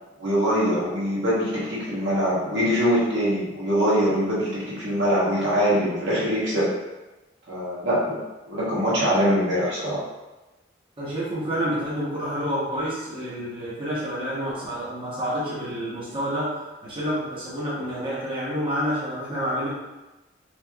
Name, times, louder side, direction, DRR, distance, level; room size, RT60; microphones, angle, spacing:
voice 1, 0.2-6.7 7.5-10.0, equal, 75° right, -7 dB, 1.5 m, -23 dB
voice 2, 11.0-19.7, equal, 30° right, -9 dB, 1.0 m, -28 dB
3.2 x 3.1 x 3.5 m, 1.1 s
head